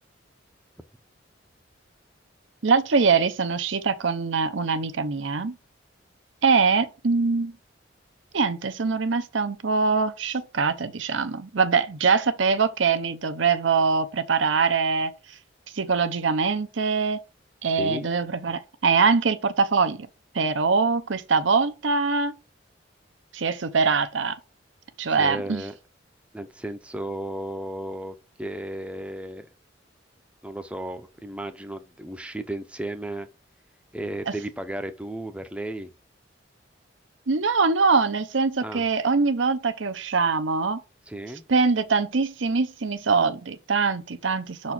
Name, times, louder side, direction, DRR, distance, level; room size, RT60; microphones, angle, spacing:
voice 1, 2.6-5.6 6.4-7.5 8.3-15.1 15.7-17.2 17.6-20.1 20.3-22.3 23.3-24.4 25.0-25.6 34.3-34.4 37.3-40.8 41.5-44.7, right 4 dB, 80° right, 0.7 m, -23 dB
voice 2, 17.7-18.1 25.1-25.8 26.3-29.5 30.4-33.3 33.9-35.9 38.6-38.9 41.1-41.4, right 1 dB, 5° right, 0.6 m, -34 dB
5.9 x 4.3 x 6.0 m
head